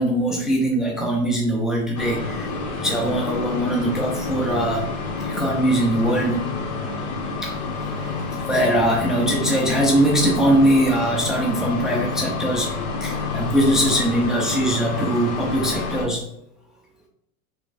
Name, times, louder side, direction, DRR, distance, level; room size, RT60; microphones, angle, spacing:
voice 1, 0.0-4.9 5.2-6.4 7.4-7.5 8.3-12.7 13.0-16.2, right 1 dB, ahead, -1 dB, 0.3 m, -21 dB
sound 1, 1.9-16.0, left 3 dB, 80° left, 1.2 m, -28 dB
4.6 x 3.1 x 2.5 m, 0.72 s
supercardioid pair, 125°, 43 cm